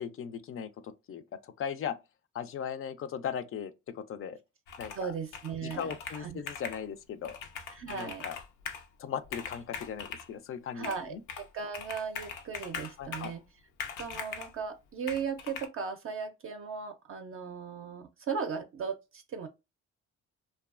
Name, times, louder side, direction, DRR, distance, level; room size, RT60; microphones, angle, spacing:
voice 1, 0.0-2.0 2.3-4.4 4.8-5.1 5.6-7.4 7.9-8.4 9.0-11.2 13.0-13.3, left 8 dB, 45° left, 0.4 m, -38 dB
Computer keyboard, 4.7-5.1 5.3-6.8 7.2-8.9 9.2-10.3 10.8-11.5 11.7-13.4 13.8-14.5 15.1-15.7, left 6 dB, 90° left, 0.6 m, -41 dB
voice 2, 4.9-6.4 7.7-8.3 10.7-13.4 14.0-19.5, right 6 dB, 45° right, 0.4 m, -37 dB
2.6 x 2.3 x 2.4 m
cardioid pair, 90°, 30 cm